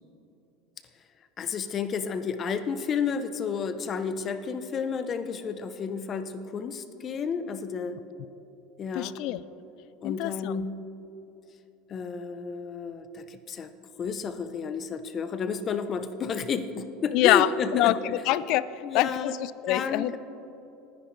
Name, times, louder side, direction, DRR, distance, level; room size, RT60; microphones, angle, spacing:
voice 1, 1.4-8.0 8.8-9.1 10.0-10.8 11.9-13.7 14.0-17.9 18.8-19.3 19.7-20.2, left 6 dB, 35° left, 10 dB, 0.8 m, -31 dB
voice 2, 8.9-9.4 10.0-10.7 17.1-20.2, left 14 dB, 60° left, 17 dB, 0.4 m, -25 dB
19.5 x 10.5 x 3.3 m, 3.0 s
supercardioid pair, 110°, 0 cm